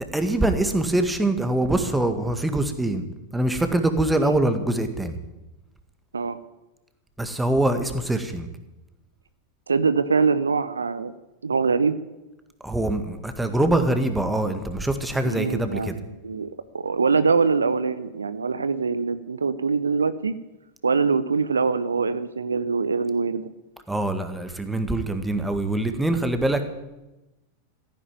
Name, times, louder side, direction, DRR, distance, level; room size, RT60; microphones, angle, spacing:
voice 1, 0.1-3.1 3.3-5.2 7.2-8.5 12.6-16.0 23.9-26.6, right 1 dB, 5° right, 8 dB, 1.9 m, -24 dB
voice 2, 9.7-11.1 11.4-12.0 15.2-20.3 20.8-23.5, right 5 dB, 75° right, 14 dB, 0.7 m, -23 dB
15.0 x 10.5 x 9.2 m, 1.0 s
figure-of-eight pair, 90°, 0 cm